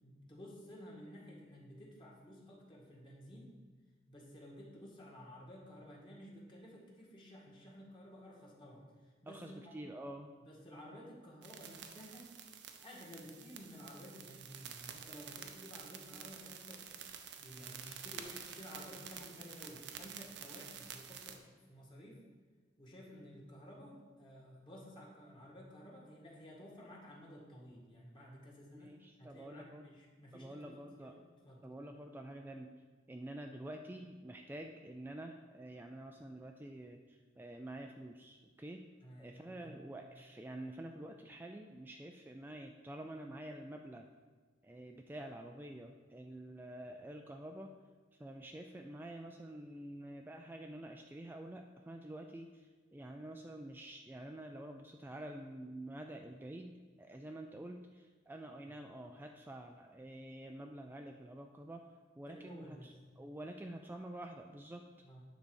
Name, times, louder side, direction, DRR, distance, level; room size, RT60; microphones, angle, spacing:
voice 1, 0.0-3.6 4.1-9.7 10.4-12.3 12.8-17.0 17.4-22.2 22.8-31.7 39.0-39.8 58.7-58.8 62.3-62.9 65.0-65.2, equal, 25° left, -4 dB, 1.9 m, -53 dB
voice 2, 9.3-10.3 28.7-29.9 30.3-31.2 31.6-32.7 33.1-38.9 39.2-44.1 44.6-47.8 48.2-64.9, right 1 dB, 10° right, 3 dB, 0.3 m, -48 dB
sound 1, 11.4-21.4, right 8 dB, 65° right, 0.7 m, -50 dB
9.7 x 4.0 x 6.4 m, 1.4 s
head